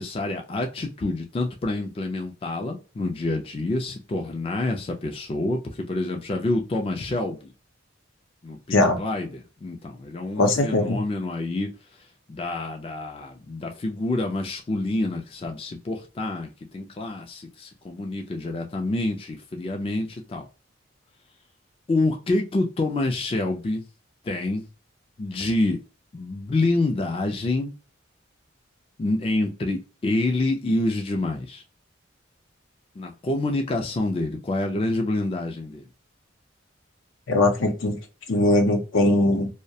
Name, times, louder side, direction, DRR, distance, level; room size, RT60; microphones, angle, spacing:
voice 1, 0.0-7.5 8.4-11.7 12.0-20.5 21.9-23.8 24.2-24.6 25.2-25.8 26.1-27.7 29.0-31.6 33.0-35.9, left 2 dB, 30° left, 0.3 m, -27 dB
voice 2, 10.4-11.0 37.3-38.0 38.3-39.5, left 2 dB, 80° left, 0.6 m, -20 dB
2.3 x 2.1 x 2.7 m
head